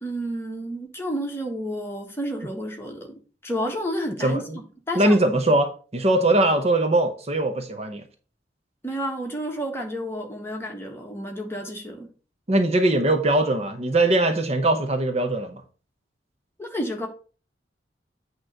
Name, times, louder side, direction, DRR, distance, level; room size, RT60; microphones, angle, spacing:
voice 1, 0.0-3.1 3.4-5.4 8.8-12.1 16.6-17.1, equal, 15° left, 1.4 m, -31 dB
voice 2, 4.2-4.6 4.9-8.0 12.5-15.6, right 1 dB, 35° right, 0.8 m, -21 dB
8.8 x 3.1 x 6.4 m
head